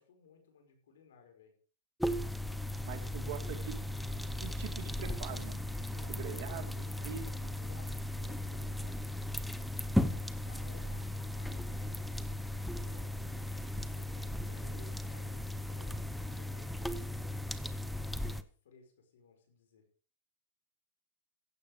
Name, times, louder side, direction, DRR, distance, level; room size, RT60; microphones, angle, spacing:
voice 1, 0.0-1.5 5.8-6.7 7.6-9.7 10.0-12.2 12.7-13.5 13.9-19.8, left 5 dB, 85° left, 4 dB, 5.4 m, -60 dB
sound 1, 2.0-18.4, left 1 dB, ahead, 0.7 m, -37 dB
voice 2, 2.8-3.8 4.4-5.6 6.1-7.6, right 9 dB, 55° right, 4 dB, 2.8 m, -44 dB
15.5 x 8.7 x 5.2 m, 0.42 s
supercardioid pair, 155°, 0 cm